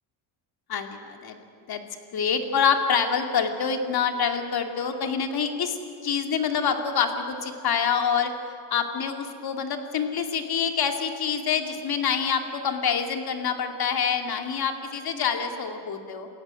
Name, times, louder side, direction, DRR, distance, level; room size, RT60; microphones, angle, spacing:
voice 1, 0.7-1.4 1.7-1.8 2.1-8.3 8.7-16.3, left 6 dB, 50° left, 5 dB, 2.7 m, -26 dB
28.0 x 16.0 x 9.1 m, 2.5 s
cardioid pair, 105°, 47 cm